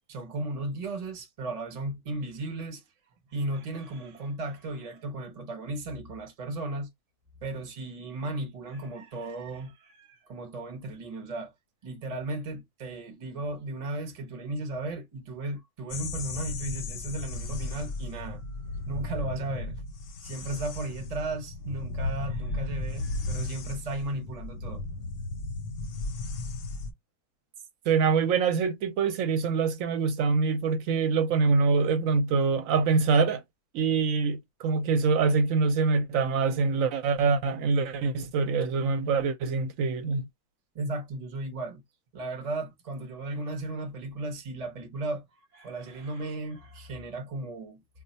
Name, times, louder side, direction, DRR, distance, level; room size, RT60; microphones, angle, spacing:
voice 1, 0.1-2.8 3.3-6.9 7.4-11.5 11.8-19.8 20.2-24.8 40.7-41.8 42.1-45.2 45.5-47.8, right 2 dB, 35° right, 0.6 m, -35 dB
sound 1, 15.9-26.9, left 2 dB, 70° left, 0.9 m, -35 dB
voice 2, 27.9-33.4 33.7-40.3, right 4 dB, 65° right, 1.0 m, -25 dB
2.3 x 2.3 x 4.0 m
omnidirectional pair, 1.6 m